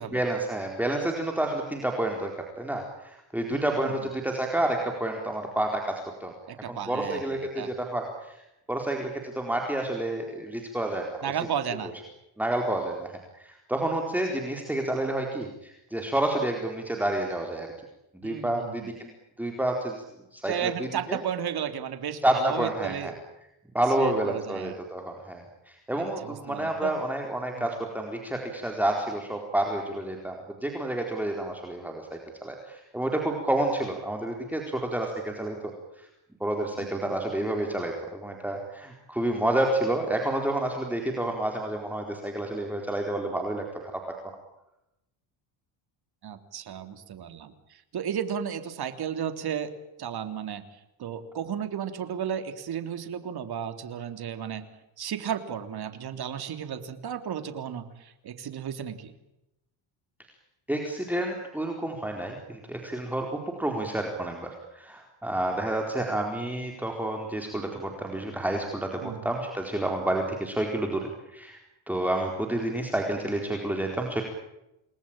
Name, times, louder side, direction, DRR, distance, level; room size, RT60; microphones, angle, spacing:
voice 1, 0.1-8.4 8.7-11.3 12.4-17.7 18.2-19.1 19.4-20.0 20.3-21.2 22.2-23.1 23.7-30.4 30.6-36.1 36.4-44.0 60.7-71.6 71.9-74.2, right 1 dB, 5° right, 1 dB, 4.3 m, -29 dB
voice 2, 3.5-3.9 6.5-7.2 7.6-7.7 11.2-11.9 18.2-18.9 20.5-23.1 24.0-24.8 25.9-26.9 27.6-27.7 36.8-36.9 46.2-47.5 47.9-49.7 50.0-50.6 51.0-54.7 55.0-59.1 69.0-69.2, right 8 dB, 50° right, 8 dB, 3.5 m, -33 dB
29.0 x 21.0 x 8.9 m, 0.89 s
cardioid pair, 130°, 48 cm